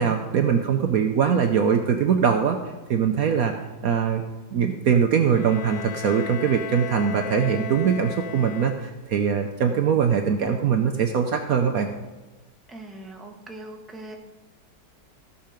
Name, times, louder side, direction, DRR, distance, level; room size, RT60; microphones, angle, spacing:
voice 1, 0.0-2.6 2.9-3.5 3.8-4.2 4.5-11.9, right 7 dB, 65° right, 5 dB, 1.1 m, -22 dB
Bowed string instrument, 5.3-9.2, left 8 dB, 85° left, 1.4 m, -36 dB
voice 2, 12.7-14.2, right 2 dB, ahead, 1 dB, 1.1 m, -41 dB
15.5 x 6.6 x 5.1 m, 1.2 s
omnidirectional pair, 1.9 m